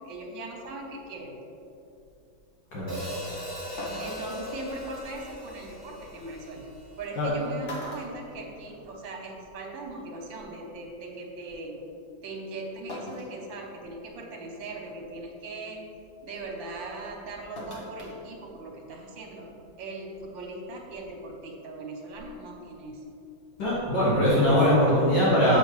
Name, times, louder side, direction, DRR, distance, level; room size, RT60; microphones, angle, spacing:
voice 1, 0.0-1.4 4.0-6.6 7.0-11.8 12.2-15.9 16.2-19.5 19.8-23.0, right 2 dB, 75° right, 1 dB, 1.7 m, -39 dB
Hi-hat, 2.9-7.2, left 1 dB, 10° left, 1.5 m, -39 dB
sound 1, 3.8-4.4 6.0-6.1 7.1-7.3 7.6-9.0 9.4-9.5 10.7-10.8 12.9-13.4 13.9-14.0 14.6-14.9 17.6-18.2 18.5-18.6, equal, 45° left, 1.2 m, -40 dB
voice 2, 23.6-25.6, equal, 70° left, -10 dB, 2.3 m, -21 dB
7.1 x 6.9 x 3.1 m, 2.7 s
omnidirectional pair, 2.0 m